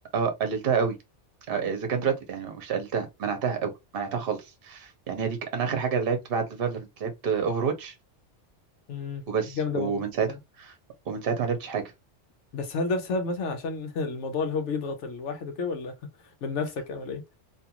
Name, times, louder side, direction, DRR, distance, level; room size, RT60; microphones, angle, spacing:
voice 1, 0.1-1.0 1.5-7.9 9.3-10.3 10.6-10.7 11.1-11.8, right 6 dB, 55° right, 0.9 m, -28 dB
voice 2, 8.9-9.2 9.5-10.0 10.3-10.4 12.5-15.9 16.4-17.2, left 4 dB, 80° left, 1.1 m, -30 dB
2.7 x 2.4 x 2.8 m
omnidirectional pair, 1.2 m